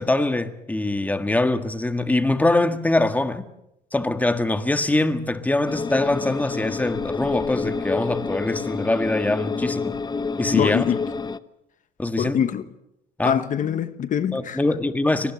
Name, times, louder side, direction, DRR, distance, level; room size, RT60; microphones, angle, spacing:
voice 1, 0.0-3.5 3.9-9.9 10.4-10.9 12.0-12.4 13.2-13.4 14.3-15.3, left 2 dB, 10° left, 1.6 m, -23 dB
sound 1, 5.7-11.4, left 4 dB, 25° left, 0.9 m, -28 dB
voice 2, 10.5-11.0 12.2-12.7 13.2-14.6, left 9 dB, 50° left, 1.1 m, -23 dB
24.5 x 19.5 x 7.6 m
cardioid pair, 110°, 17 cm